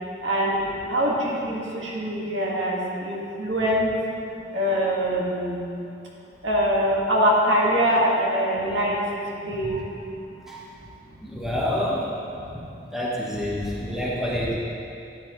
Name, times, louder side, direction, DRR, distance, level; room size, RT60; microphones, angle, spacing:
voice 1, 0.2-0.6 0.9-2.8 3.0-3.9 4.5-5.6 6.4-9.0 9.5-9.8, equal, 80° right, -3 dB, 1.9 m, -23 dB
voice 2, 11.2-12.1 12.9-14.6, left 1 dB, ahead, -6 dB, 1.3 m, -28 dB
12.5 x 10.0 x 3.2 m, 2.6 s
head